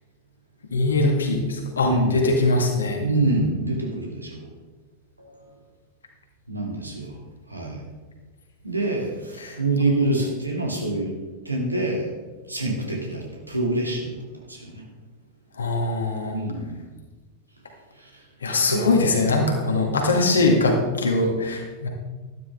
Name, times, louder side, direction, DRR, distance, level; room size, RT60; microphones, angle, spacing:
voice 1, 0.7-3.0 9.4-9.6 15.6-16.4 18.4-21.9, left 2 dB, 70° left, 2 dB, 2.1 m, -22 dB
voice 2, 1.8-2.3 3.0-4.5 5.2-5.4 6.5-7.1 7.5-7.8 8.6-11.1 11.4-12.1 12.5-14.1 14.5-14.8 16.3-16.8 18.7-18.8, right 2 dB, 85° right, -1 dB, 2.5 m, -26 dB
12.5 x 12.0 x 3.7 m, 1.3 s
figure-of-eight pair, 90°, 0 cm